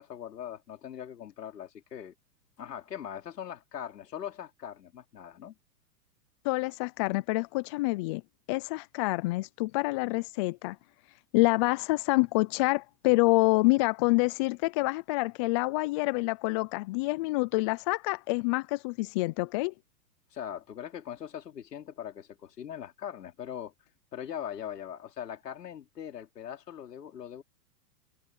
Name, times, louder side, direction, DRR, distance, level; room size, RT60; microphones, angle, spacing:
voice 1, 0.0-2.1 2.6-5.5 20.3-23.7 24.1-27.4, left 9 dB, 80° left, 3.6 m, -41 dB
voice 2, 6.4-8.2 8.5-10.8 11.3-19.7, left 24 dB, 20° left, 0.3 m, -27 dB
hypercardioid pair, 120°, 48 cm